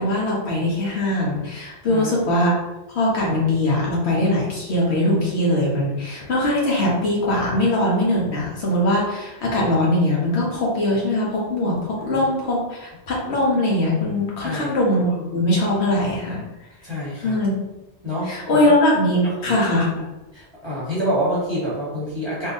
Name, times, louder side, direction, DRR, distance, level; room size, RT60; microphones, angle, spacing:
voice 1, 0.0-2.5 2.9-16.4 17.2-17.5 18.2-20.0, left 1 dB, 70° left, -4 dB, 1.3 m, -21 dB
voice 2, 14.4-14.7 16.8-17.4 18.0-18.7 19.2-19.5 20.3-22.5, equal, 25° right, -8 dB, 1.1 m, -27 dB
3.7 x 2.7 x 2.6 m, 0.99 s
omnidirectional pair, 1.1 m